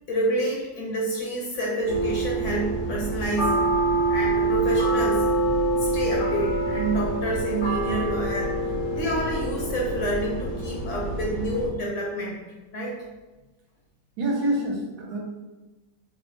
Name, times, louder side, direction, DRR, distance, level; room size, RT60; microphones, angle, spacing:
voice 1, 0.1-3.6 4.1-5.3 5.8-8.6 9.0-12.4 12.7-13.0, right 1 dB, 65° left, -3 dB, 0.8 m, -28 dB
sound 1, 1.9-11.7, right 2 dB, 85° left, 1.2 m, -26 dB
voice 2, 14.2-15.2, right 1 dB, 85° right, -1 dB, 1.2 m, -26 dB
3.1 x 2.0 x 3.1 m, 1.2 s
omnidirectional pair, 1.7 m